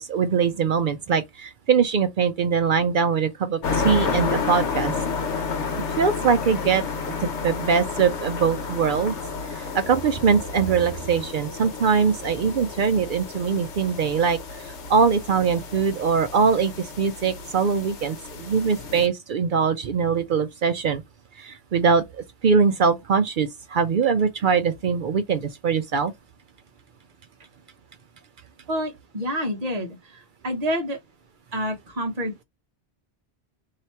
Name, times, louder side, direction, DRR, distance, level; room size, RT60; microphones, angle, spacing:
voice 1, 0.0-4.9 5.8-9.1 9.5-21.0 21.4-26.1, right 6 dB, 60° right, 0.6 m, -22 dB
sound 1, 3.6-19.1, left 5 dB, 90° left, 1.3 m, -31 dB
voice 2, 28.7-31.0 31.5-32.4, equal, 35° right, 1.2 m, -28 dB
3.1 x 2.8 x 4.3 m
omnidirectional pair, 1.1 m